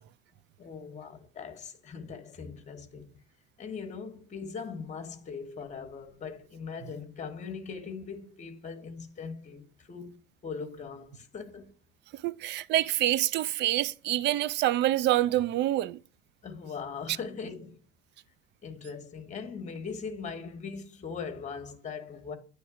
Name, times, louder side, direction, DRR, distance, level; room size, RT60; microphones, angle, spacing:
voice 1, 0.6-3.1 3.6-11.7 16.4-17.8 18.6-22.4, left 5 dB, 35° left, 1.1 m, -40 dB
voice 2, 12.2-16.0, right 14 dB, 55° right, 0.4 m, -26 dB
9.3 x 3.2 x 4.8 m
cardioid pair, 105°, 21 cm